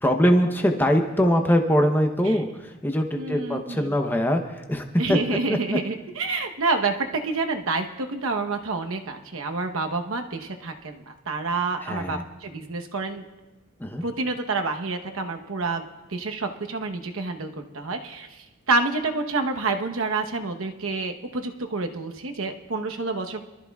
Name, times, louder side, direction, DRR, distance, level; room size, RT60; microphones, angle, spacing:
voice 1, 0.0-5.2 5.5-5.8 11.8-12.2 13.8-14.0, equal, 10° left, 4 dB, 0.7 m, -22 dB
voice 2, 3.2-3.9 5.0-7.0 7.2-13.2 14.0-15.8 16.1-23.4, right 3 dB, 70° right, 5 dB, 1.0 m, -28 dB
24.5 x 13.5 x 2.3 m, 1.1 s
head